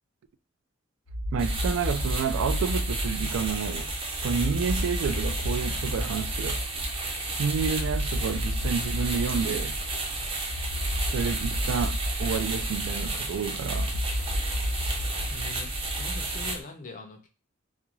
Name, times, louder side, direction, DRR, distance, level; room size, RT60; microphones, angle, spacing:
sound 1, 1.1-16.6, equal, 75° left, 0.8 m, -32 dB
voice 1, 1.3-3.9 4.2-6.6 7.3-9.8 11.1-14.0, right 6 dB, 80° right, 0.3 m, -30 dB
sound 2, 1.4-16.6, right 2 dB, 30° right, 0.5 m, -33 dB
voice 2, 15.2-17.3, left 2 dB, 40° left, 0.5 m, -42 dB
2.5 x 2.2 x 2.9 m
head